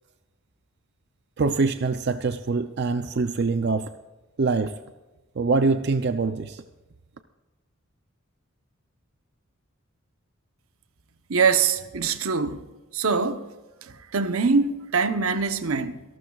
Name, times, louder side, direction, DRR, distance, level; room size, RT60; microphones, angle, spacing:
voice 1, 1.4-3.9 4.4-4.7 5.4-6.6, right 4 dB, 50° right, 0.5 m, -24 dB
voice 2, 11.3-12.6 12.9-13.4 13.8-16.0, right 5 dB, 80° right, 0.8 m, -23 dB
26.5 x 12.0 x 2.4 m
head